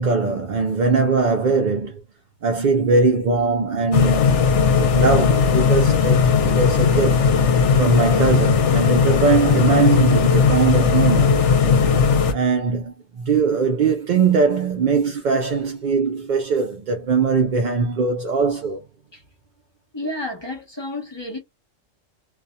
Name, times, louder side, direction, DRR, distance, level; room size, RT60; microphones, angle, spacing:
voice 1, 0.0-1.9 2.4-7.2 7.8-11.4 12.3-18.8, right 4 dB, 60° right, 0.5 m, -21 dB
sound 1, 3.9-12.3, left 5 dB, 70° left, 1.0 m, -17 dB
voice 2, 19.9-21.4, left 1 dB, 25° left, 0.8 m, -30 dB
2.7 x 2.4 x 2.2 m
omnidirectional pair, 1.3 m